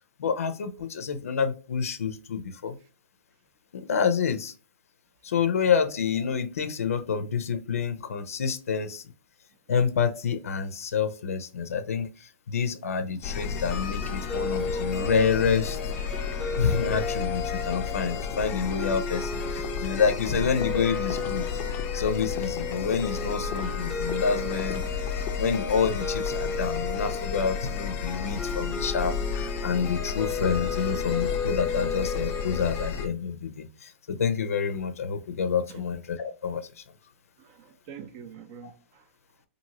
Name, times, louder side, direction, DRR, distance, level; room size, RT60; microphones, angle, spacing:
voice 1, 0.2-2.8 3.7-4.5 5.2-9.0 9.7-15.8 16.6-21.6 21.9-24.8 25.4-36.8, left 6 dB, 85° left, 0.4 m, -28 dB
sound 1, 13.2-33.1, left 7 dB, 25° left, 0.4 m, -33 dB
sound 2, 13.7-32.9, left 4 dB, 5° left, 0.8 m, -34 dB
voice 2, 35.4-35.8 37.4-39.4, right 7 dB, 40° right, 0.5 m, -47 dB
2.8 x 2.6 x 2.8 m
hypercardioid pair, 140°, 8 cm